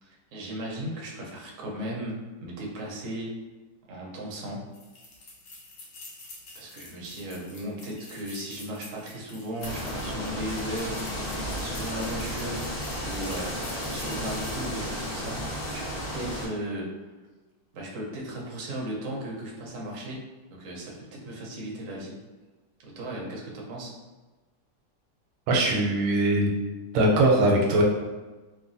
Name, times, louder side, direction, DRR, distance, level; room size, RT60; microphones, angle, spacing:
voice 1, 0.0-3.3 3.9-4.7 6.5-16.9 17.7-22.2 22.8-24.0, right 1 dB, 65° right, -3 dB, 0.8 m, -36 dB
sound 1, 4.7-14.8, left 2 dB, 70° left, 1.3 m, -47 dB
sound 2, 9.6-16.5, equal, 50° left, 0.7 m, -33 dB
voice 2, 25.5-26.5 26.9-27.8, right 1 dB, 90° right, 0 dB, 1.3 m, -21 dB
3.2 x 2.4 x 2.5 m, 1.2 s
omnidirectional pair, 2.0 m